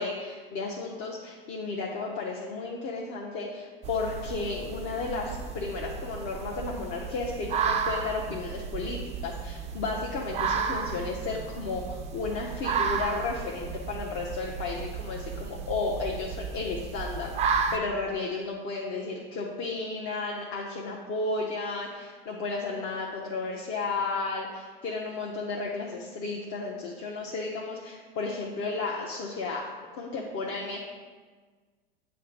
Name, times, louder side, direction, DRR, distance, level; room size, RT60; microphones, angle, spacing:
voice 1, 0.0-29.7 30.0-30.8, left 3 dB, 40° left, -2 dB, 0.8 m, -33 dB
sound 1, 3.8-17.8, right 5 dB, 20° right, 0.4 m, -33 dB
7.5 x 2.6 x 5.3 m, 1.5 s
hypercardioid pair, 90°, 31 cm